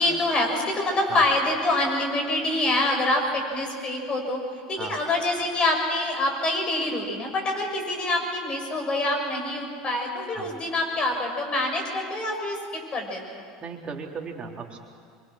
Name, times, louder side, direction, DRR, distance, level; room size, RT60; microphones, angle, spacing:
voice 1, 0.0-4.4 4.7-13.4, left 2 dB, 30° left, 2 dB, 7.1 m, -26 dB
voice 2, 13.6-14.8, right 5 dB, 35° right, 1 dB, 3.3 m, -36 dB
25.5 x 24.5 x 6.4 m, 2.2 s
hypercardioid pair, 90°, 3 cm